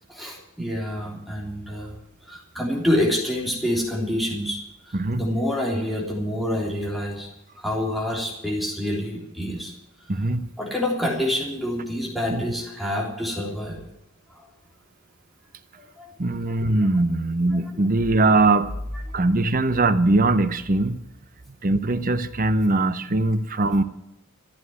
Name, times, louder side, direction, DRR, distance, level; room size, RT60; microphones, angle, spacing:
voice 1, 0.1-2.0 2.2-7.3 7.6-9.7 10.6-13.8 14.3-14.4 15.8-16.1 19.1-19.2, left 1 dB, ahead, -1 dB, 3.4 m, -27 dB
voice 2, 4.9-5.3 10.1-10.5 12.3-12.4 16.2-18.8 19.1-21.0 21.6-23.8, right 2 dB, 40° right, 12 dB, 0.8 m, -21 dB
14.0 x 9.2 x 9.4 m, 0.85 s
head